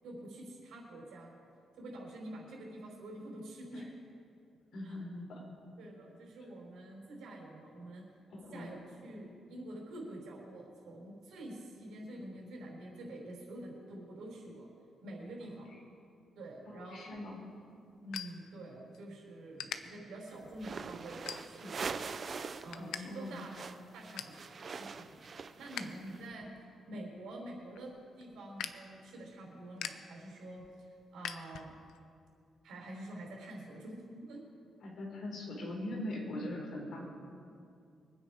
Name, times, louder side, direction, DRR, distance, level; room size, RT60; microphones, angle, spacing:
voice 1, 0.0-1.4 1.8-3.9 4.8-5.0 5.8-8.1 8.4-14.7 15.0-15.7 16.3-17.1 18.0-23.5 23.9-26.5 26.9-31.7 32.6-34.4, right 1 dB, 80° right, -2 dB, 4.9 m, -47 dB
voice 2, 4.7-5.4 8.3-8.7 16.7-17.5 22.8-23.3 34.8-37.0, left 1 dB, 55° left, -2 dB, 4.1 m, -41 dB
sound 1, 17.0-19.1 19.5-19.8 20.4-20.6 21.2-21.8 22.2-23.0 23.3-23.4 23.8-24.4 24.9-26.0 26.3-32.0, left 9 dB, 85° left, 0.7 m, -45 dB
sound 2, 20.5-22.8 23.0-26.2, right 5 dB, 35° right, 0.5 m, -43 dB
24.5 x 9.4 x 5.1 m, 2.4 s
wide cardioid pair, 180°, 0 cm